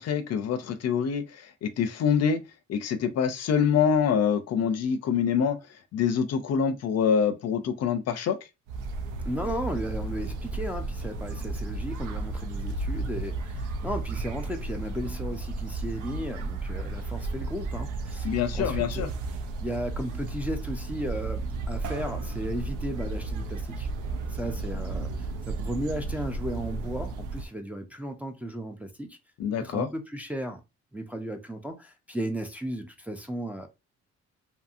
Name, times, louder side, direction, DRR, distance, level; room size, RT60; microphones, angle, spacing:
voice 1, 0.0-2.4 2.7-5.6 5.9-8.4 18.2-19.1 29.4-29.9, left 7 dB, 60° left, 0.5 m, -25 dB
sound 1, 8.7-27.4, right 3 dB, 90° right, 0.5 m, -33 dB
voice 2, 9.3-19.1 19.6-23.9 24.3-29.2 29.6-30.6 30.9-33.7, equal, 5° right, 0.4 m, -35 dB
2.7 x 2.6 x 2.4 m
cardioid pair, 90°, 30 cm